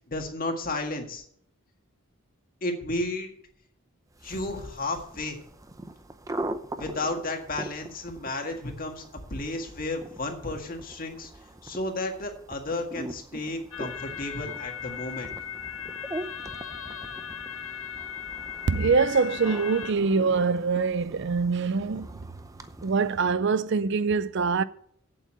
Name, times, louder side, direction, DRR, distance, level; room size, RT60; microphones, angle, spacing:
voice 1, 0.1-1.2 2.6-3.3 4.2-5.4 6.8-9.0 9.3-11.3 11.6-15.3, left 2 dB, 40° left, 1.8 m, -32 dB
sound 1, 4.1-23.4, right 1 dB, 15° right, 0.6 m, -42 dB
sound 2, 13.7-19.9, left 8 dB, 80° left, 0.8 m, -38 dB
voice 2, 18.7-22.1 22.8-24.6, right 4 dB, 55° right, 0.5 m, -24 dB
8.3 x 7.8 x 7.5 m
head